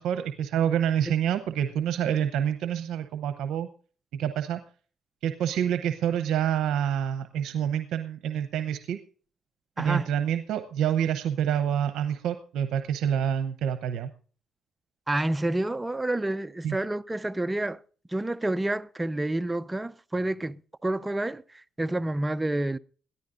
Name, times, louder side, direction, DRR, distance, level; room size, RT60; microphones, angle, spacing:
voice 1, 0.0-3.7 4.1-4.6 5.2-9.0 9.8-14.1 16.6-16.8, right 9 dB, 85° right, 0.8 m, -27 dB
voice 2, 9.8-10.1 15.1-17.8 18.1-22.8, right 1 dB, 15° right, 0.5 m, -29 dB
21.0 x 14.5 x 2.5 m
cardioid pair, 90°, 0 cm